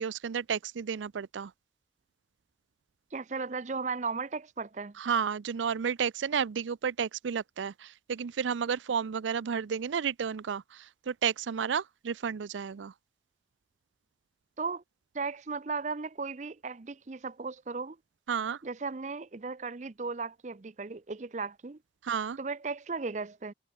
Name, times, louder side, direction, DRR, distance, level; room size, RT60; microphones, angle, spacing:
voice 1, 0.0-1.5 5.0-12.9 18.3-18.6 22.0-22.4, right 7 dB, 90° right, 0.5 m, -32 dB
voice 2, 3.1-5.0 14.6-14.8 15.1-18.0 18.6-21.8 22.4-23.5, right 4 dB, 40° right, 0.6 m, -36 dB
head